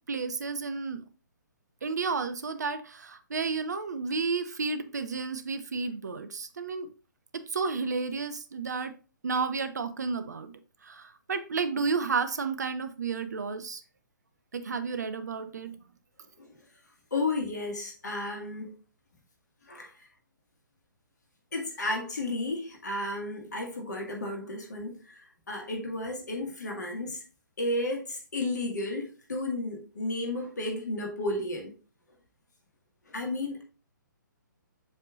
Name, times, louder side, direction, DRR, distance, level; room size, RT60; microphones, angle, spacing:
voice 1, 0.1-1.0 1.8-6.9 7.3-8.9 9.2-10.5 10.8-13.8 14.5-15.7, right 4 dB, 55° right, 0.8 m, -32 dB
voice 2, 17.1-18.8 19.6-20.1 21.5-27.2 27.6-31.7 33.1-33.6, left 2 dB, 60° left, 2.0 m, -33 dB
7.4 x 5.5 x 2.5 m
figure-of-eight pair, 135°, 11 cm